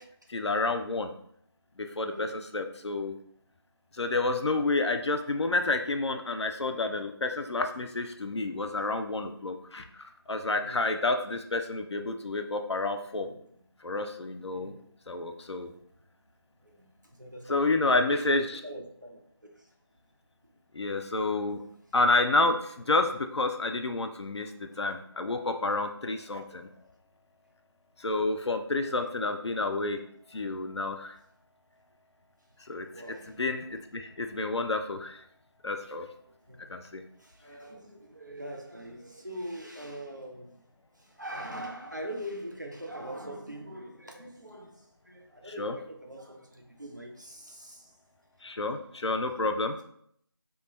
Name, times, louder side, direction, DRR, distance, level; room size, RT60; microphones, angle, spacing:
voice 1, 0.3-1.1 1.8-2.3 2.5-3.1 3.9-13.3 13.8-14.7 15.1-15.7 17.5-18.4 20.7-21.6 21.9-26.7 28.0-30.0 30.3-31.2 32.6-32.9 33.4-35.2 35.6-36.1 36.7-37.0 45.6-45.7 48.4-49.8, left 2 dB, 85° left, 6 dB, 0.4 m, -29 dB
voice 2, 2.0-2.4 10.6-10.9 13.1-13.5 14.5-15.1 16.6-19.7 21.8-22.0 28.7-29.6 32.9-33.4 36.2-36.7 37.2-40.6 40.9-48.0, right 1 dB, 45° right, 1 dB, 0.4 m, -43 dB
2.2 x 2.2 x 2.9 m, 0.67 s
figure-of-eight pair, 175°, 14 cm